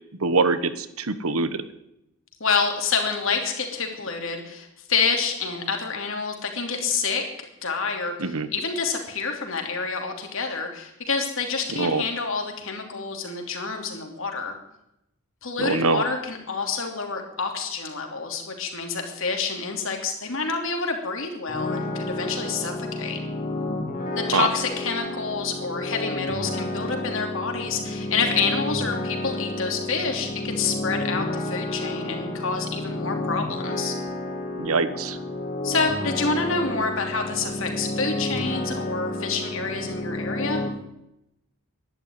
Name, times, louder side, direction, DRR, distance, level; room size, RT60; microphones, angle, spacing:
voice 1, 0.2-1.6 8.2-8.5 11.7-12.0 15.6-16.0 24.3-24.5 34.6-35.2, right 3 dB, 75° right, 12 dB, 1.2 m, -23 dB
voice 2, 2.4-7.2 7.6-14.5 15.4-23.2 24.2-33.9 35.6-40.6, left 4 dB, 60° left, 3 dB, 3.0 m, -28 dB
sound 1, 21.5-40.7, left 1 dB, 35° left, 2.2 m, -30 dB
11.5 x 11.5 x 9.5 m, 0.83 s
head